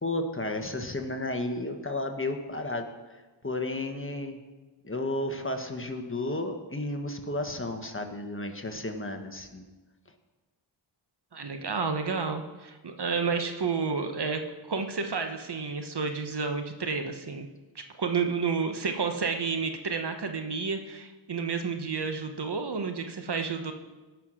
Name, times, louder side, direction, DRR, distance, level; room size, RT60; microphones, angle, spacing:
voice 1, 0.0-2.9 3.4-4.4 4.8-9.6, left 2 dB, 25° left, 5 dB, 1.4 m, -32 dB
voice 2, 11.3-14.4 14.7-17.5 17.7-23.7, right 5 dB, 55° right, 6 dB, 1.2 m, -30 dB
17.0 x 5.9 x 6.2 m, 1.2 s
wide cardioid pair, 60°, 49 cm